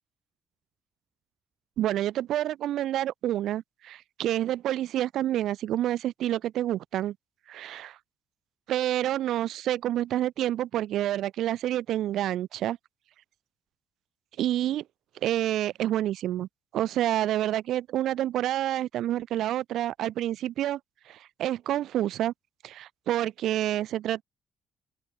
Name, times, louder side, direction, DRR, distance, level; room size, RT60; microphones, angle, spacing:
voice 1, 1.8-7.1 7.5-8.0 8.7-12.8 14.4-14.8 15.2-16.5 16.7-20.8 21.1-22.3 22.6-24.2, right 12 dB, 80° right, 2.7 m, -28 dB
cardioid pair, 90°, 0 cm